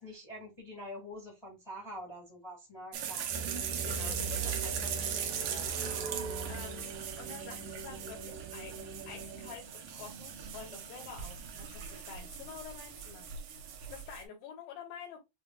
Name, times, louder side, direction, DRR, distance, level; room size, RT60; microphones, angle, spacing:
voice 1, 0.0-3.3, equal, 20° left, 0.6 m, -45 dB
sound 1, 2.9-14.2, right 8 dB, 85° right, 1.3 m, -39 dB
sound 2, 3.3-9.6, right 4 dB, 70° right, 2.7 m, -41 dB
voice 2, 3.8-6.2 6.5-8.7 9.1-13.2 13.9-15.2, left 7 dB, 85° left, 2.8 m, -48 dB
6.7 x 2.3 x 2.3 m
omnidirectional pair, 4.0 m